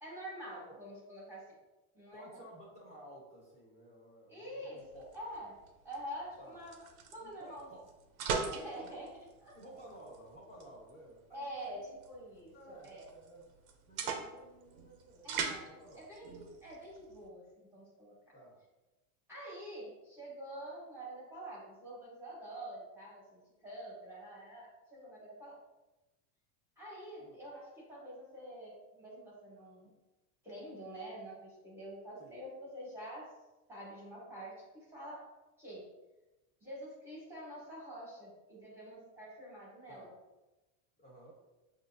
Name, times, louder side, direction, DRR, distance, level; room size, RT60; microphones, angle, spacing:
voice 1, 0.0-1.5 1.9-2.4 4.3-5.6 5.8-7.7 8.5-9.1 9.4-9.6 11.3-13.1 15.2-15.7 15.9-18.1 19.3-25.6 26.8-29.9 30.4-33.3 33.7-35.9 36.6-40.1, right 1 dB, 5° right, -6 dB, 1.2 m, -47 dB
voice 2, 2.1-5.1 6.4-6.6 7.2-7.8 8.8-9.0 9.5-12.0 12.5-13.4 13.9-16.1 18.3-18.6 27.2-27.4 32.2-32.4 39.9-40.1 41.0-41.3, right 1 dB, 15° left, -6 dB, 1.2 m, -54 dB
sound 1, 4.8-17.3, right 5 dB, 85° right, 0.8 m, -43 dB
5.9 x 2.6 x 2.6 m, 1.1 s
supercardioid pair, 140°, 42 cm